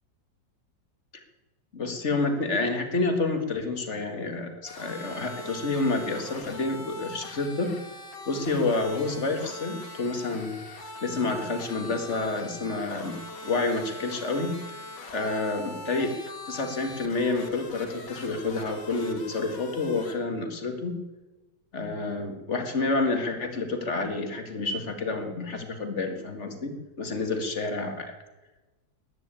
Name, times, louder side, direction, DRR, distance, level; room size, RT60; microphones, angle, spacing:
voice 1, 1.7-7.7 8.3-10.6 11.0-13.2 13.4-14.5 15.1-16.1 16.5-20.9 21.7-28.1, left 3 dB, 40° left, 6 dB, 2.1 m, -29 dB
sound 1, 4.6-20.1, left 2 dB, 70° left, 2.6 m, -42 dB
14.0 x 11.0 x 8.9 m, 1.1 s
omnidirectional pair, 2.0 m